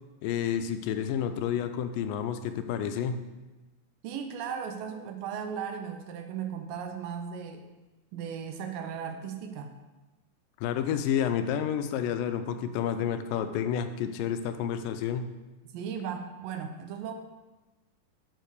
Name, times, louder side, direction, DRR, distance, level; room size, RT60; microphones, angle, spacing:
voice 1, 0.2-3.2 10.6-15.3, left 8 dB, 90° left, 9 dB, 2.3 m, -30 dB
voice 2, 4.0-7.7 8.1-9.8 15.7-17.1, right 7 dB, 85° right, 5 dB, 2.4 m, -36 dB
8.0 x 4.6 x 6.4 m, 1.1 s
omnidirectional pair, 3.9 m